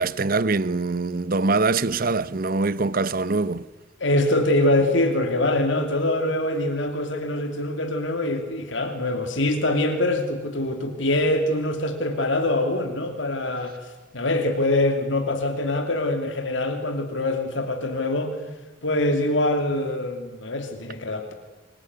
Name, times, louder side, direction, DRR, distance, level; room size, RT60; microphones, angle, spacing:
voice 1, 0.0-3.6, right 3 dB, 50° right, 0.8 m, -23 dB
voice 2, 4.0-13.7 14.1-18.4 18.8-21.3, left 1 dB, 80° left, 2.9 m, -24 dB
25.0 x 21.0 x 9.6 m
head